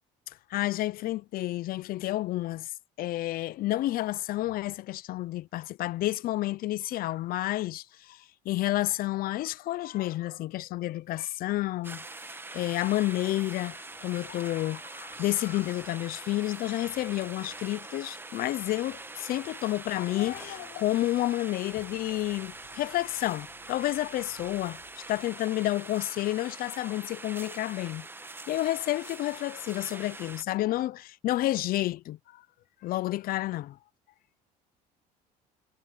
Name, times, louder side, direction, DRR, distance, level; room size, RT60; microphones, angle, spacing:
voice 1, 0.5-2.7 3.0-12.0 12.5-28.1 28.5-32.4 32.8-33.8, left 16 dB, 60° left, 0.8 m, -30 dB
sound 1, 11.8-30.4, right 2 dB, 15° right, 1.2 m, -44 dB
sound 2, 13.9-23.4, left 7 dB, 45° left, 4.5 m, -62 dB
Idling, 21.7-25.9, left 23 dB, 80° left, 7.2 m, -62 dB
supercardioid pair, 90°, 17 cm